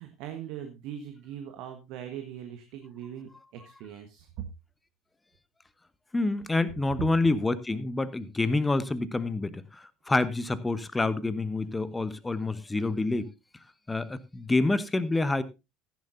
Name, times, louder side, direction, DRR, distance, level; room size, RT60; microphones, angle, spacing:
voice 1, 0.0-4.3, right 9 dB, 55° right, 1.4 m, -41 dB
voice 2, 6.1-13.3 13.9-15.4, left 2 dB, 15° left, 1.1 m, -27 dB
15.0 x 10.5 x 2.7 m
figure-of-eight pair, 65°, 0 cm